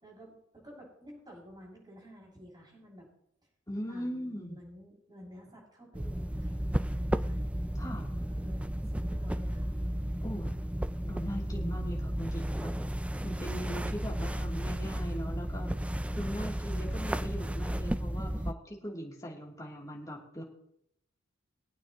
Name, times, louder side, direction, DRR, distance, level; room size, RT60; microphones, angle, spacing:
voice 1, 0.0-3.0 3.9-7.4 7.9-9.7, equal, 20° right, -3 dB, 6.4 m, -52 dB
voice 2, 3.7-4.6 7.7-8.1 10.2-10.5 11.0-12.7 13.2-15.7 16.1-20.4, equal, 20° left, -3 dB, 3.1 m, -40 dB
sound 1, 5.9-18.5, equal, 5° right, 0.3 m, -33 dB
23.0 x 9.0 x 3.0 m, 0.72 s
head